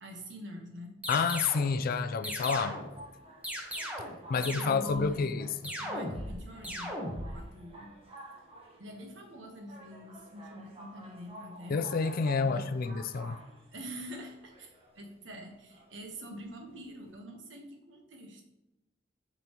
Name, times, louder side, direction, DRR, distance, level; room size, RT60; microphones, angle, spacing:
voice 1, 0.0-0.9 4.3-5.3 5.8-7.9 8.8-11.8 12.4-12.7 13.2-13.3 13.7-18.4, equal, 75° right, 3 dB, 1.2 m, -45 dB
sound 1, 1.0-1.7 2.2-3.0 3.4-4.2 4.4-5.1 5.6-6.3 6.6-7.3, equal, 10° right, 1.2 m, -37 dB
voice 2, 1.1-2.8 4.3-5.7 11.7-13.4, left 5 dB, 50° left, 12 dB, 0.4 m, -29 dB
sound 2, 2.3-17.1, right 1 dB, 30° right, 1.2 m, -51 dB
7.6 x 5.3 x 3.0 m, 0.99 s
head